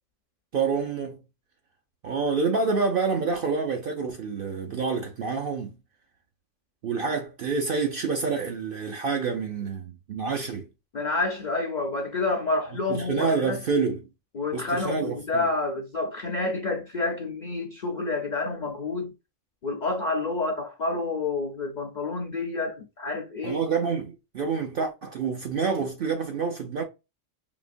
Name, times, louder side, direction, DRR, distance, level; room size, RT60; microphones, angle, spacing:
voice 1, 0.5-1.2 2.0-5.7 6.8-10.7 12.9-14.0 14.5-15.5 23.4-26.8, right 5 dB, 55° right, 0.6 m, -27 dB
voice 2, 10.9-13.6 14.3-19.1 19.6-23.6, left 3 dB, 55° left, 0.5 m, -29 dB
5.0 x 2.8 x 2.5 m
omnidirectional pair, 1.4 m